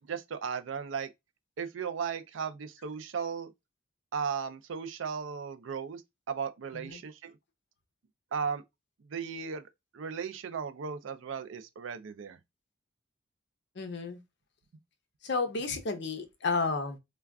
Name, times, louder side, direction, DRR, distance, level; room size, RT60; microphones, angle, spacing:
voice 1, 0.1-1.1 1.6-3.5 4.1-6.0 6.3-7.4 8.3-8.6 9.1-9.6 9.9-12.4, right 6 dB, 75° right, 0.4 m, -36 dB
voice 2, 13.8-14.2 15.2-17.0, left 4 dB, 55° left, 0.6 m, -32 dB
2.3 x 2.2 x 3.4 m
head